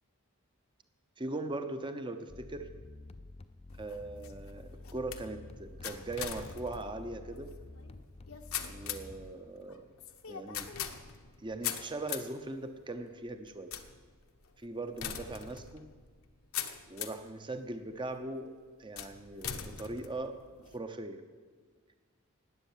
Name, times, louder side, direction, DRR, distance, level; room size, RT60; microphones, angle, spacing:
voice 1, 1.2-2.7 3.8-7.6 8.7-10.0 10.3-10.7 11.4-13.7 14.6-15.9 16.9-20.4 20.7-21.2, right 2 dB, 20° right, 8 dB, 0.7 m, -40 dB
sound 1, 2.3-9.3, left 2 dB, 30° left, 0.5 m, -50 dB
sound 2, 3.7-17.3 17.9-18.3 19.0-20.8, left 9 dB, 75° left, 1.1 m, -42 dB
19.0 x 8.1 x 7.4 m, 1.5 s
head